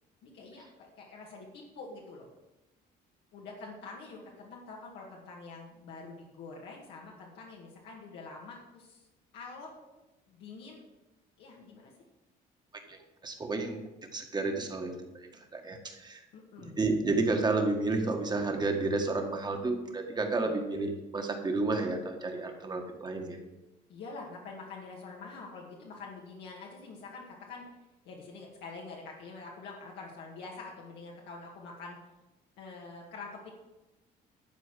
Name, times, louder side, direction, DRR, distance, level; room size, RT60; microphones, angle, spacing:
voice 1, 0.2-2.3 3.3-9.0 9.3-9.7 10.3-10.9 11.4-11.9 16.3-16.8 20.4-20.6 23.9-27.7 28.0-32.0 32.6-33.5, left 3 dB, 80° left, -3 dB, 2.0 m, -46 dB
voice 2, 12.9-13.8 14.1-16.2 16.6-23.4, right 3 dB, 25° right, 4 dB, 1.6 m, -31 dB
11.5 x 4.6 x 7.5 m, 1.0 s
cardioid pair, 110°, 17 cm